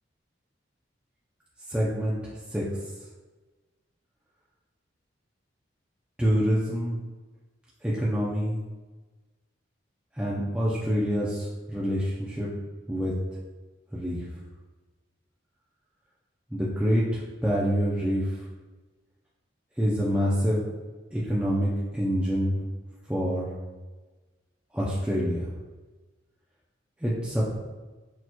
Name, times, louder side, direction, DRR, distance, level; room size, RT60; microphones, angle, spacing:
voice 1, 1.7-2.6 6.2-7.0 7.8-8.6 10.1-12.5 12.9-13.1 13.9-14.3 16.5-18.5 19.8-20.6 21.1-22.6 23.1-23.5 24.7-25.5 27.0-27.6, equal, 5° right, -7 dB, 0.5 m, -26 dB
6.3 x 2.9 x 2.3 m, 1.2 s
head